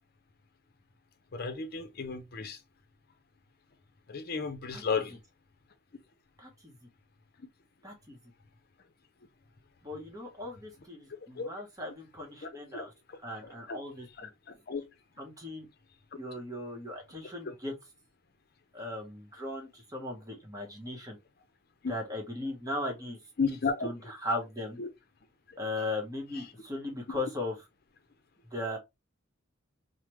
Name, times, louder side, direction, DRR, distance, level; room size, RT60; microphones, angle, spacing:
voice 1, 1.3-2.6 4.1-5.2 11.4-11.5 12.4-13.8 14.2-14.3 14.7-14.8 21.8-21.9 23.4-23.9 24.8-24.9 25.5-25.6 27.1-27.2, left 5 dB, 50° left, 0.6 m, -34 dB
voice 2, 6.4-6.7 7.8-8.2 9.8-12.9 13.2-14.1 15.2-15.7 16.2-17.7 18.7-21.2 21.9-23.2 23.8-24.8 25.6-27.5 28.5-28.8, left 1 dB, 15° right, 1.0 m, -37 dB
3.2 x 2.1 x 3.0 m
head